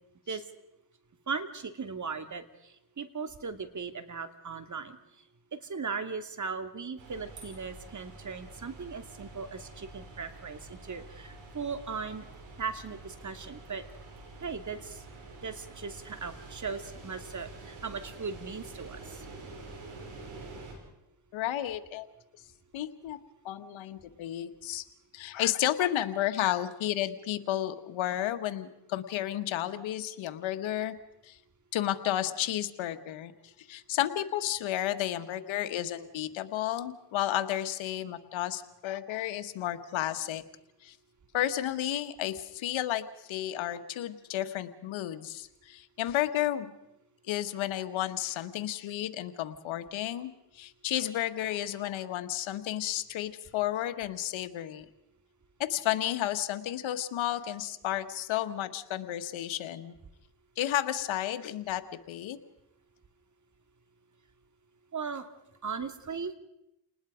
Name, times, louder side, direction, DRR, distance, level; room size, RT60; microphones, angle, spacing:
voice 1, 1.3-5.0 5.5-12.3 12.6-13.8 14.4-15.0 15.4-19.2 64.9-65.3 65.6-66.3, right 5 dB, 40° right, 8 dB, 2.5 m, -38 dB
sound 1, 7.0-20.7, right 2 dB, 85° right, 6.0 m, -47 dB
voice 2, 21.3-22.1 22.7-23.2 23.4-24.8 25.1-30.9 31.2-31.4 31.7-40.4 40.8-40.9 41.3-46.7 47.3-54.8 55.6-60.0 60.6-61.8 62.1-62.4, left 12 dB, 85° left, 9 dB, 1.5 m, -32 dB
29.5 x 20.0 x 5.1 m, 0.87 s
supercardioid pair, 65°, 46 cm